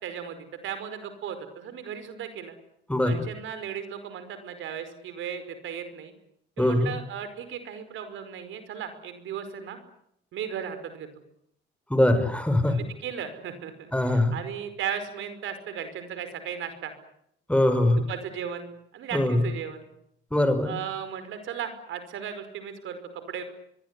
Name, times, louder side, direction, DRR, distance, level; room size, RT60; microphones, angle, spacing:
voice 1, 0.0-2.5 3.0-6.1 6.6-9.8 10.3-11.1 12.7-16.9 18.0-18.7 18.9-19.9 20.6-23.4, right 8 dB, 80° right, 10 dB, 5.3 m, -36 dB
voice 2, 6.6-6.9 11.9-12.8 13.9-14.3 17.5-18.0 19.1-19.4 20.3-20.7, left 1 dB, 5° left, 9 dB, 5.6 m, -22 dB
24.5 x 23.0 x 9.9 m, 0.74 s
cardioid pair, 90°, 20 cm